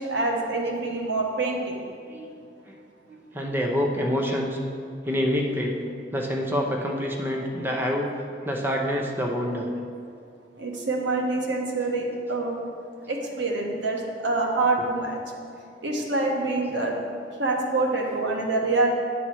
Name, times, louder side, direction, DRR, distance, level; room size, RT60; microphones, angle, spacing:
voice 1, 0.0-1.8 10.6-12.6 13.1-15.2 15.8-17.0 17.4-18.9, right 2 dB, 85° right, 0 dB, 1.2 m, -26 dB
voice 2, 3.1-4.6 5.0-5.8 6.1-8.1 8.4-9.7, equal, 10° right, 0 dB, 0.7 m, -27 dB
9.4 x 4.2 x 6.2 m, 2.3 s
head